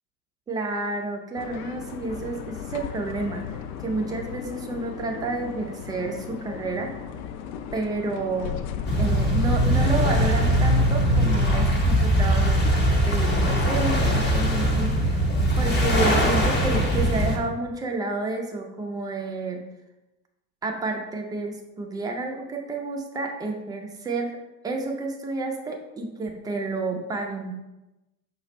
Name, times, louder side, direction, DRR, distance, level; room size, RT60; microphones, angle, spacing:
voice 1, 0.5-6.9 7.7-8.6 9.0-12.6 13.1-15.2 15.6-19.6 20.6-24.3 24.6-27.5, right 3 dB, 10° right, 1 dB, 0.3 m, -30 dB
sound 1, 1.3-11.7, left 8 dB, 50° left, 0.5 m, -37 dB
sound 2, 8.9-17.4, equal, 20° left, 0.8 m, -21 dB
5.2 x 2.4 x 4.1 m, 0.99 s
hypercardioid pair, 75°, 50 cm